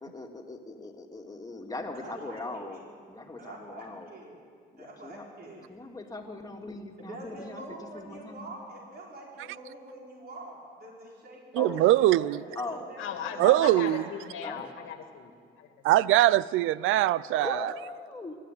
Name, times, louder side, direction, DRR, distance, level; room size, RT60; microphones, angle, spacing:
voice 1, 0.0-2.8 3.1-4.1 4.7-5.3 5.7-8.5 11.6-11.9 12.6-12.9 13.4-13.7 14.4-14.8 17.3-18.4, left 2 dB, 20° left, 2.5 m, -40 dB
voice 2, 1.9-2.8 3.4-4.4 4.8-5.6 7.0-14.0, right 1 dB, 55° right, 4.5 m, -45 dB
voice 3, 11.6-12.4 13.4-14.0 15.8-17.6, right 15 dB, 90° right, 0.4 m, -22 dB
voice 4, 13.0-15.8, left 8 dB, 90° left, 2.1 m, -38 dB
24.0 x 12.0 x 9.4 m
cardioid pair, 90°, 20 cm